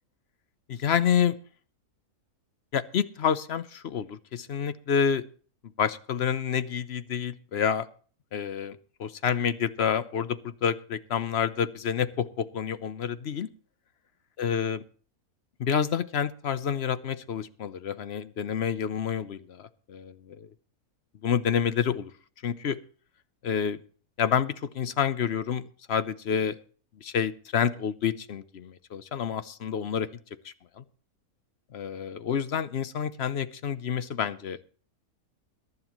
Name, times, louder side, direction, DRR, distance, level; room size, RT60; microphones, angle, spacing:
voice 1, 0.7-1.4 2.7-5.2 5.8-7.9 8.3-13.5 14.4-14.8 15.6-20.5 21.2-22.1 22.4-22.8 23.4-23.8 24.2-26.6 27.0-30.1 30.4-30.8 31.7-34.6, left 8 dB, 55° left, 14 dB, 0.8 m, -28 dB
22.0 x 11.0 x 3.0 m, 0.41 s
omnidirectional pair, 1.6 m